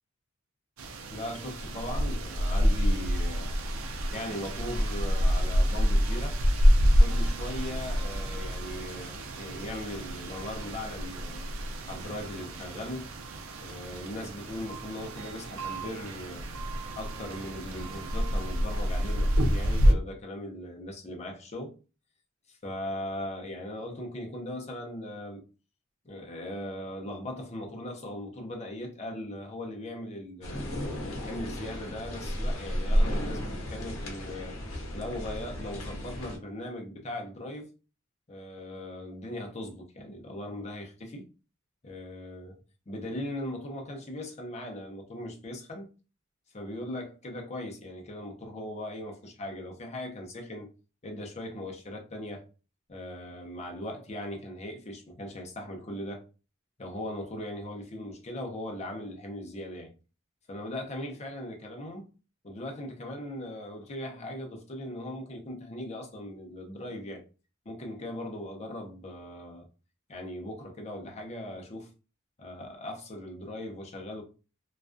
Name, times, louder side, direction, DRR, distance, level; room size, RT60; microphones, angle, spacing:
sound 1, 0.8-19.9, equal, 85° right, 0.4 m, -28 dB
voice 1, 1.1-3.5 4.1-6.4 7.0-11.4 11.9-13.1 13.6-16.5 17.0-21.8 22.5-25.4 26.0-30.7 31.1-34.6 34.9-37.7 38.3-41.3 41.8-42.6 42.9-45.9 46.5-50.7 51.0-52.5 52.9-56.2 56.8-59.9 60.5-62.1 62.4-67.2 67.7-69.7 70.1-71.9 72.4-74.2, left 1 dB, 35° left, 0.6 m, -39 dB
sound 2, 3.0-8.0, right 1 dB, 35° right, 0.7 m, -55 dB
sound 3, 30.4-36.4, equal, 80° left, 0.7 m, -32 dB
2.3 x 2.2 x 2.4 m
head